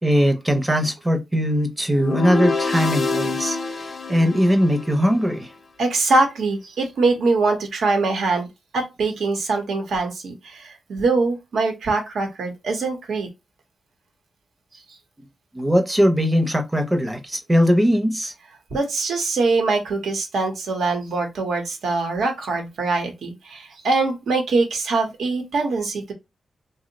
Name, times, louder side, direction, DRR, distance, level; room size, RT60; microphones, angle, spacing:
voice 1, 0.0-5.5 15.5-18.3, equal, 10° right, 0.5 m, -20 dB
sound 1, 1.9-5.2, left 3 dB, 50° left, 0.5 m, -26 dB
voice 2, 5.8-8.5 8.7-13.3 18.7-26.1, right 3 dB, 90° right, 0.9 m, -23 dB
2.7 x 2.0 x 3.9 m
wide cardioid pair, 150°, 0 cm